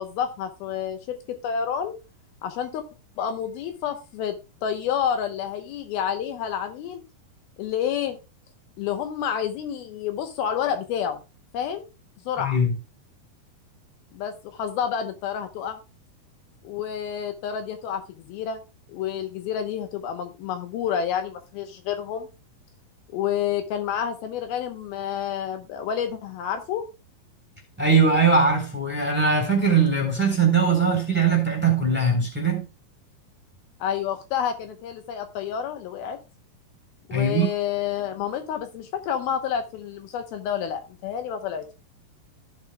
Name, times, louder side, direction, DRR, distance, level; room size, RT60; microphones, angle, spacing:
voice 1, 0.0-2.0 2.4-2.8 3.2-7.0 7.6-8.2 8.8-11.2 11.5-11.8 12.3-12.6 14.1-15.8 16.6-18.0 18.3-18.6 18.9-22.3 23.1-26.9 33.8-36.2 37.1-41.7, left 8 dB, 75° left, 2.7 m, -29 dB
voice 2, 12.4-12.7 27.8-32.6 37.1-37.5, right 4 dB, 5° right, 2.8 m, -21 dB
15.0 x 7.3 x 2.2 m
omnidirectional pair, 4.6 m